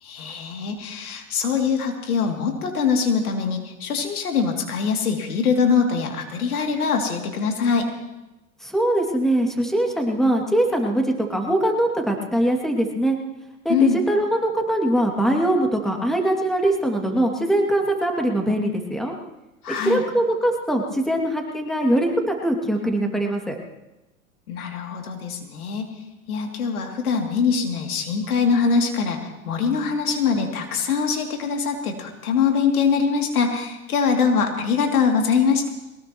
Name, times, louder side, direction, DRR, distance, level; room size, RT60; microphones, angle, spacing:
voice 1, 0.0-7.9 13.7-14.0 19.6-20.0 24.5-25.9 26.3-35.7, left 5 dB, 80° left, 2 dB, 3.0 m, -23 dB
voice 2, 8.6-13.2 13.6-19.1 19.8-23.6, right 1 dB, ahead, 1 dB, 2.5 m, -22 dB
22.5 x 19.5 x 3.1 m, 0.99 s
hypercardioid pair, 105°, 44 cm